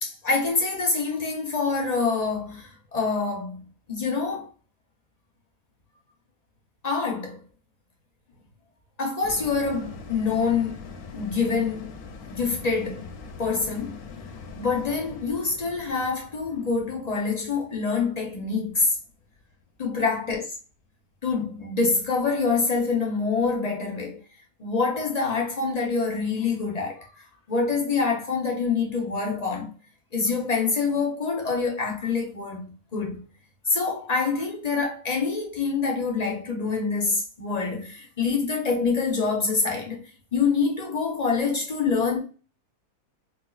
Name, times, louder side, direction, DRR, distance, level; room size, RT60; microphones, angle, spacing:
voice 1, 0.0-4.5 6.8-7.4 9.0-10.9 11.1-12.0 12.3-13.1 13.4-14.0 14.6-19.0 19.8-20.5 21.2-24.2 24.6-29.7 30.1-33.2 33.6-42.2, left 4 dB, 55° left, 0.4 m, -26 dB
sound 1, 9.2-19.9 20.3-20.4, left 5 dB, 80° left, 1.1 m, -43 dB
4.2 x 2.3 x 2.3 m
omnidirectional pair, 1.6 m